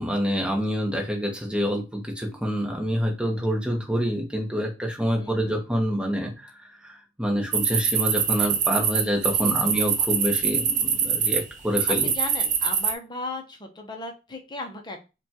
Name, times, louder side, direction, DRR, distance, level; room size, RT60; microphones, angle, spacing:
voice 1, 0.0-12.1, equal, 5° right, 1 dB, 0.9 m, -27 dB
voice 2, 5.1-5.6 9.4-9.7 12.0-15.1, left 3 dB, 25° left, 4 dB, 0.7 m, -36 dB
sound 1, 7.5-11.4 11.7-12.9, right 7 dB, 40° right, 0.5 m, -24 dB
5.0 x 2.3 x 2.9 m, 0.29 s
head